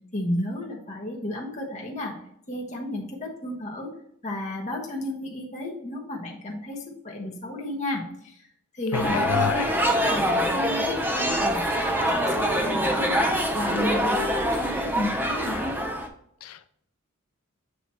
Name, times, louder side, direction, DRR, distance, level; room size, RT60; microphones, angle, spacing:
voice 1, 0.1-2.2 2.5-3.9 4.2-8.5 8.7-13.2 13.4-15.8, left 1 dB, 35° left, -2 dB, 1.4 m, -33 dB
voice 2, 8.9-9.7 16.4-16.7, left 6 dB, 90° left, 12 dB, 0.5 m, -28 dB
sound 1, 8.9-16.1, equal, 10° right, 0.7 m, -24 dB
8.0 x 3.0 x 4.6 m, 0.70 s
head